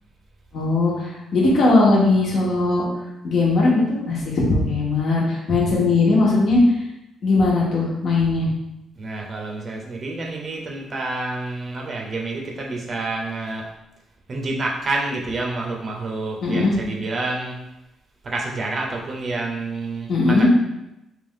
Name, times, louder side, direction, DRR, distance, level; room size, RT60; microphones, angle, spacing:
voice 1, 0.5-2.8 3.2-6.6 7.2-8.5 16.4-16.7 20.1-20.5, left 3 dB, 65° left, -4 dB, 1.2 m, -19 dB
voice 2, 8.9-13.7 14.3-17.6 18.2-20.5, right 2 dB, 45° right, 0 dB, 0.7 m, -28 dB
3.5 x 2.4 x 3.7 m, 0.91 s
cardioid pair, 90°, 0 cm